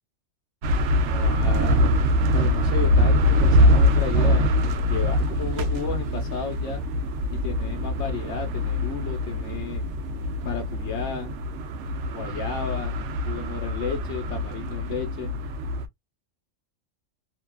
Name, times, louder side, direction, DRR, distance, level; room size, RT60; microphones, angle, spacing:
sound 1, 0.6-15.9, left 1 dB, 70° right, 0.8 m, -23 dB
voice 1, 1.0-1.9 2.3-6.8 7.3-9.8 10.4-11.3 12.1-13.0 13.2-15.3, left 6 dB, 70° left, 1.1 m, -33 dB
2.8 x 2.2 x 2.2 m
omnidirectional pair, 1.3 m